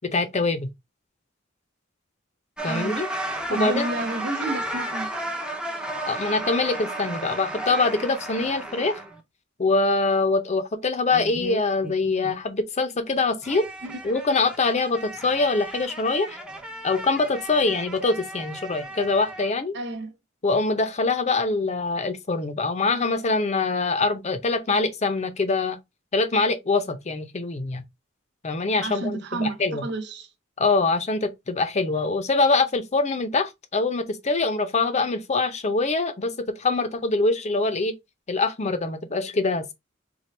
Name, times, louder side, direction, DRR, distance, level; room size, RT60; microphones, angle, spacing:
voice 1, 0.0-0.7 2.6-3.1 3.5-3.9 6.1-9.0 9.6-13.7 14.0-16.4 16.8-19.7 20.4-25.8 26.1-27.8 28.4-29.8 30.6-37.9 38.3-39.7, left 3 dB, 35° left, 0.6 m, -24 dB
sound 1, 2.6-9.2 11.1-12.3 13.4-19.5, right 1 dB, 5° right, 0.6 m, -34 dB
voice 2, 2.6-3.0 3.5-5.1 13.8-14.0 19.7-20.1 28.8-30.3, right 2 dB, 60° right, 0.7 m, -30 dB
4.3 x 2.3 x 3.2 m
head